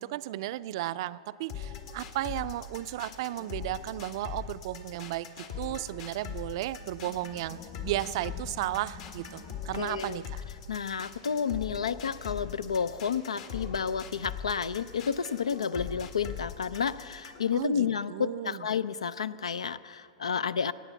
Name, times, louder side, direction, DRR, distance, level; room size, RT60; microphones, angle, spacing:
voice 1, 0.0-5.3 5.6-10.2 17.5-18.6, right 14 dB, 60° right, 15 dB, 0.4 m, -34 dB
sound 1, 1.5-17.5, left 7 dB, 60° left, 1.7 m, -41 dB
sound 2, 6.8-12.1, left 6 dB, 35° left, 1.3 m, -50 dB
voice 2, 9.7-10.2 10.7-20.7, left 6 dB, 90° left, 16 dB, 0.4 m, -31 dB
18.0 x 8.4 x 7.0 m, 2.6 s
hypercardioid pair, 115°, 3 cm